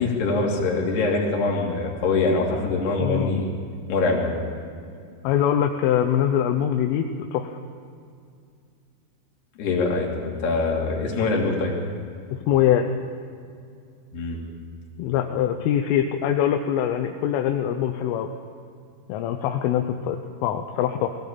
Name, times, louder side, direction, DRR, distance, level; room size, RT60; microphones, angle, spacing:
voice 1, 0.0-3.5 3.9-4.4 9.6-11.7 14.1-14.4, left 3 dB, 55° left, -2 dB, 4.8 m, -23 dB
voice 2, 3.0-3.3 5.2-7.6 12.3-12.9 15.0-18.3 19.1-21.2, left 10 dB, 80° left, 4 dB, 3.4 m, -23 dB
20.0 x 17.0 x 8.8 m, 2.3 s
omnidirectional pair, 5.8 m